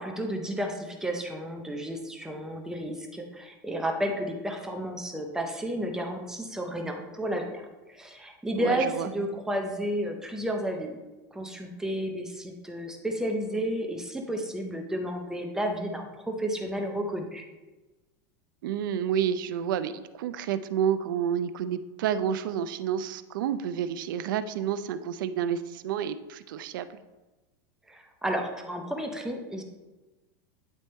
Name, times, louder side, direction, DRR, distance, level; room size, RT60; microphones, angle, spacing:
voice 1, 0.0-11.0 11.3-17.4 27.9-29.6, equal, 5° right, 2 dB, 0.5 m, -32 dB
voice 2, 8.5-9.1 18.6-26.9, right 9 dB, 90° right, 13 dB, 0.5 m, -29 dB
9.3 x 3.5 x 4.2 m, 1.1 s
supercardioid pair, 165°, 11 cm